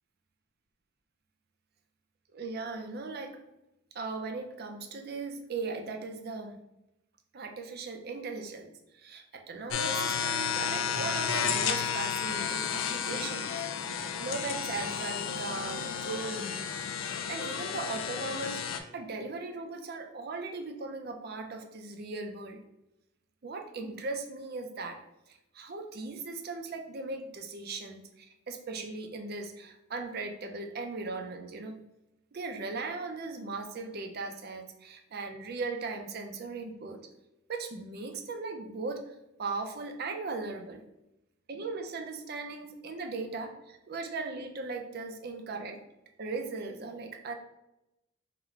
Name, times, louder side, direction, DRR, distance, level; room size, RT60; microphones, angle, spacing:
voice 1, 2.3-3.4 3.9-6.6 7.3-16.6 17.3-22.6 23.4-25.0 25.3-31.8 32.3-37.0 37.5-40.8 41.5-45.8 46.2-47.3, right 3 dB, 50° right, 5 dB, 0.5 m, -38 dB
sound 1, 9.7-18.8, left 7 dB, 80° left, 0.4 m, -32 dB
3.9 x 2.2 x 4.5 m, 0.90 s
head